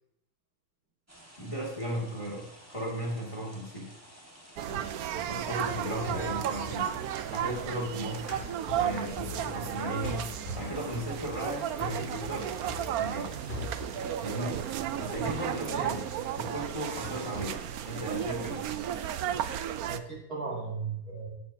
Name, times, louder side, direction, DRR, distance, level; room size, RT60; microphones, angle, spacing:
sound 1, 1.1-19.6, equal, 10° right, 1.5 m, -53 dB
voice 1, 1.4-3.9 5.3-6.9 7.3-8.3 8.7-10.3 10.6-12.5 12.7-13.3 14.2-14.6 15.0-16.0 16.4-17.6 17.9-18.6, equal, 15° left, -3 dB, 2.2 m, -36 dB
sound 2, 4.6-20.0, right 10 dB, 75° right, 0.8 m, -34 dB
sound 3, 4.7-7.9 8.3-9.8 10.0-14.2, left 1 dB, 30° left, 5.2 m, -41 dB
voice 2, 15.6-16.1 19.9-21.3, right 4 dB, 45° right, -4 dB, 3.2 m, -36 dB
17.0 x 6.9 x 2.8 m, 0.76 s
omnidirectional pair, 2.1 m